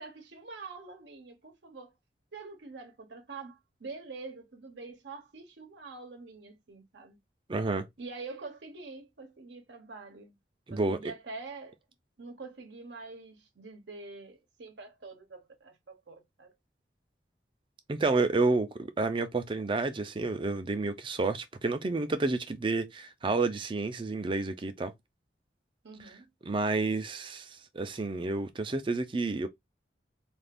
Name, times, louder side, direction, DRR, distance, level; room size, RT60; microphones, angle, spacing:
voice 1, 0.0-1.9 2.3-7.2 8.0-10.4 10.7-11.8 12.2-16.5 25.8-26.3, right 3 dB, 80° right, 0.8 m, -45 dB
voice 2, 7.5-7.9 10.7-11.0 17.9-24.9 26.5-29.5, right 3 dB, 30° right, 0.4 m, -30 dB
2.5 x 2.4 x 3.4 m
head